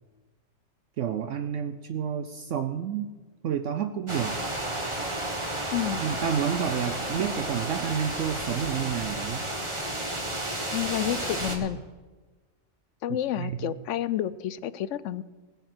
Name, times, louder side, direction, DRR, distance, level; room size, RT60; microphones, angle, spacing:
voice 1, 1.0-3.1 3.4-4.4 6.0-9.4 13.4-13.8, right 8 dB, 65° right, 8 dB, 0.9 m, -30 dB
sound 1, 4.1-11.6, right 1 dB, 20° right, 1.6 m, -32 dB
voice 2, 10.7-11.8 13.0-15.2, left 11 dB, 70° left, 16 dB, 0.8 m, -29 dB
19.5 x 7.2 x 6.0 m, 1.3 s
omnidirectional pair, 1.4 m